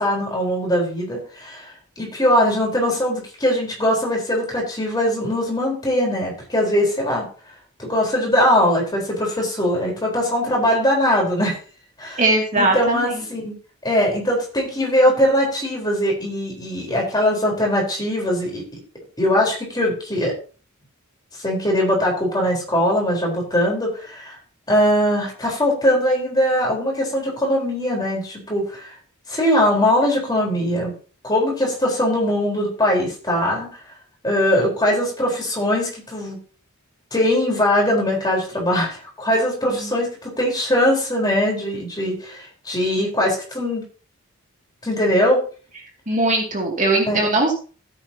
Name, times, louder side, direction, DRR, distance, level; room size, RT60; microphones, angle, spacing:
voice 1, 0.0-7.3 7.8-11.6 12.0-12.2 12.5-13.5 13.8-18.6 19.2-20.3 21.4-24.3 24.7-28.9 29.3-30.9 31.2-33.7 34.2-36.4 37.1-43.8 44.8-45.4 47.1-47.3, left 1 dB, 20° left, -1 dB, 4.3 m, -21 dB
voice 2, 12.2-13.2 39.7-40.0 46.1-47.5, right 2 dB, 35° right, 0 dB, 2.6 m, -20 dB
15.5 x 9.1 x 2.9 m, 0.37 s
head